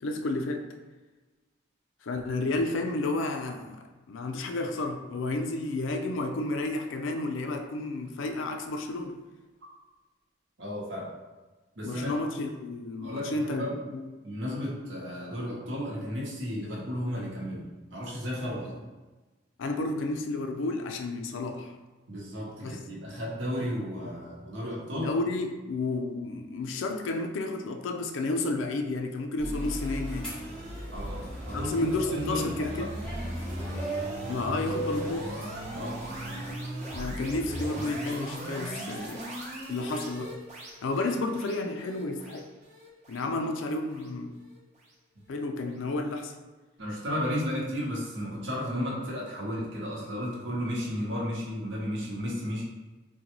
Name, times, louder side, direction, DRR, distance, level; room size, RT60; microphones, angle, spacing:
voice 1, 0.0-0.7 2.0-3.8 4.1-9.2 11.8-14.0 19.6-21.7 22.6-22.8 24.9-30.3 31.5-32.9 34.3-35.3 36.9-39.3 39.7-40.4 40.8-42.5 43.1-44.4 45.3-46.3, left 2 dB, 80° left, 5 dB, 0.4 m, -31 dB
voice 2, 10.6-11.1 11.8-12.1 13.0-13.8 14.2-18.8 22.1-25.1 30.9-32.9 35.7-36.1 46.8-52.6, equal, 75° right, -3 dB, 0.9 m, -33 dB
sound 1, 29.4-44.6, equal, 35° right, 0.7 m, -38 dB
sound 2, 29.6-36.6, right 2 dB, 5° left, 0.8 m, -40 dB
3.8 x 2.2 x 2.9 m, 1.2 s
head